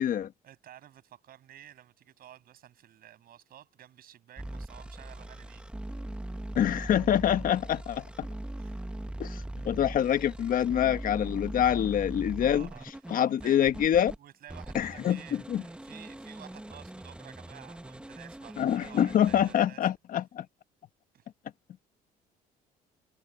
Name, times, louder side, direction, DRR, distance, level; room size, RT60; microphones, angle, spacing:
voice 1, 0.4-5.6 8.6-8.8 11.7-11.9 12.4-13.7 14.2-19.9 21.1-21.3, right 11 dB, 60° right, 7.9 m, -52 dB
sound 1, 4.4-14.2 14.5-19.5, right 1 dB, 5° right, 1.1 m, -40 dB
voice 2, 6.6-8.3 9.2-12.7 13.1-14.1 14.7-15.2 15.5-15.6 18.6-20.4, left 10 dB, 55° left, 1.3 m, -26 dB
cardioid pair, 110°, 17 cm